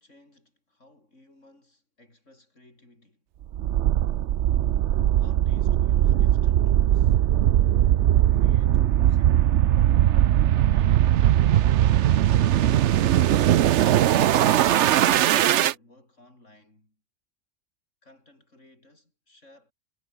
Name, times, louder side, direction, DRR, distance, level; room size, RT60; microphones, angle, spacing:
voice 1, 0.0-3.3 5.2-7.2 8.2-9.5 10.7-13.3 13.7-17.0 18.0-19.7, left 1 dB, 90° left, 7.6 m, -56 dB
sound 1, 3.5-15.7, right 12 dB, 75° right, 1.0 m, -20 dB
omnidirectional pair, 1.2 m